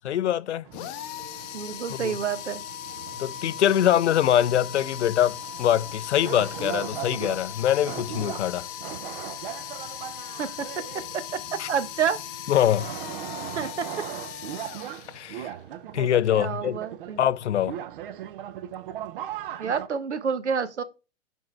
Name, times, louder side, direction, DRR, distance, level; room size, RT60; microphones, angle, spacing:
voice 1, 0.0-0.9 1.9-2.2 3.2-8.7 11.6-11.7 12.5-12.9 15.1-15.5 15.9-16.8 17.2-17.8, left 11 dB, 75° left, 0.5 m, -24 dB
sound 1, 0.6-19.9, right 11 dB, 50° right, 0.7 m, -39 dB
sound 2, 0.7-15.6, left 11 dB, 25° left, 0.6 m, -38 dB
voice 2, 1.5-2.6 10.4-10.7 11.1-11.2 11.5-12.2 13.6-13.9 16.3-17.2 19.6-20.8, right 7 dB, 80° right, 1.0 m, -28 dB
5.4 x 5.3 x 4.2 m
figure-of-eight pair, 110°, 34 cm